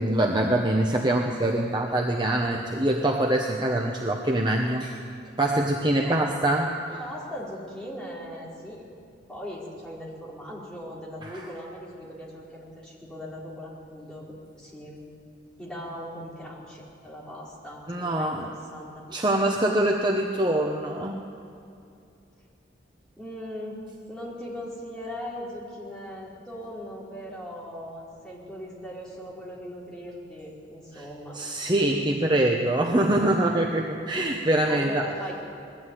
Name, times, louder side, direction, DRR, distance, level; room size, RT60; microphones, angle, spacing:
voice 1, 0.0-5.0 5.4-7.0 11.2-11.4 17.9-18.5 19.1-21.3 30.9-31.0 31.3-35.1, right 1 dB, 25° right, 1 dB, 1.1 m, -24 dB
voice 2, 7.0-8.9 9.3-14.2 14.5-15.1 15.6-19.0 23.2-31.4 32.0-32.1 34.7-35.3, equal, 5° left, -6 dB, 4.6 m, -39 dB
20.5 x 14.5 x 9.3 m, 2.6 s
head